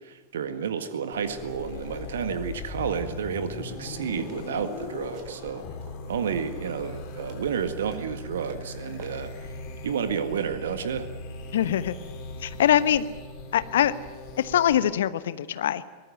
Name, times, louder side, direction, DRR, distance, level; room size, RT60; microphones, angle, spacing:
voice 1, 0.0-5.6 6.1-9.5 9.8-11.1, right 7 dB, 60° right, 10 dB, 1.7 m, -31 dB
sound 1, 1.1-14.8, left 3 dB, 45° left, 4.9 m, -39 dB
sound 2, 3.9-4.4 5.1-6.3 6.7-7.6 7.8-8.7 9.0-9.1, right 7 dB, 45° right, 4.3 m, -48 dB
voice 2, 11.5-12.0 12.4-13.1 13.5-13.9 14.4-15.8, left 10 dB, 60° left, 15 dB, 1.1 m, -23 dB
23.0 x 19.5 x 9.1 m, 1.4 s
figure-of-eight pair, 90°, 0 cm